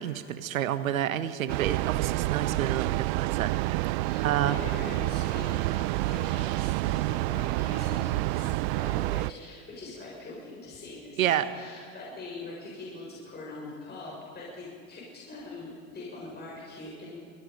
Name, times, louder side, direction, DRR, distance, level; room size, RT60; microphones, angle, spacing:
voice 1, 0.0-4.6 11.2-11.5, right 11 dB, 90° right, 12 dB, 1.3 m, -29 dB
Train, 1.5-9.3, right 21 dB, 55° right, 0.4 m, -28 dB
voice 2, 4.0-17.2, left 2 dB, 25° left, -4 dB, 6.6 m, -42 dB
26.5 x 20.5 x 5.4 m, 2.2 s
hypercardioid pair, 100°, 40 cm